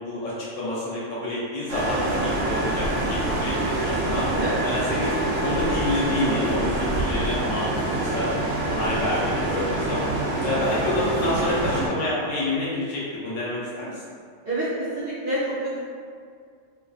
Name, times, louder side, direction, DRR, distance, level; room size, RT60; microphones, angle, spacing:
voice 1, 0.0-4.3 4.6-5.1 5.4-6.7 7.0-8.3 8.6-10.1 10.4-14.0, left 1 dB, 85° left, -7 dB, 1.0 m, -28 dB
sound 1, 1.7-11.9, right 1 dB, 85° right, 0.9 m, -25 dB
voice 2, 14.4-15.8, right 1 dB, 55° right, -14 dB, 1.0 m, -27 dB
2.6 x 2.3 x 2.4 m, 2.2 s
omnidirectional pair, 1.3 m